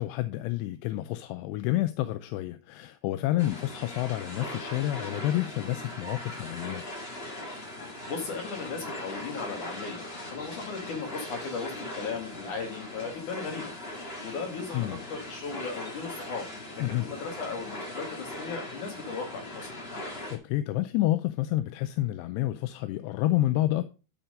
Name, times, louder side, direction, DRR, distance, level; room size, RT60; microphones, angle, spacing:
voice 1, 0.0-6.8 14.7-15.0 16.8-17.1 20.0-23.8, left 15 dB, 90° left, 2.7 m, -29 dB
sound 1, 3.4-20.4, left 1 dB, 30° left, 1.1 m, -40 dB
voice 2, 8.0-10.0 10.3-13.7 14.2-16.5 16.9-19.8, left 4 dB, 55° left, 3.1 m, -36 dB
12.0 x 4.5 x 5.2 m
omnidirectional pair, 4.7 m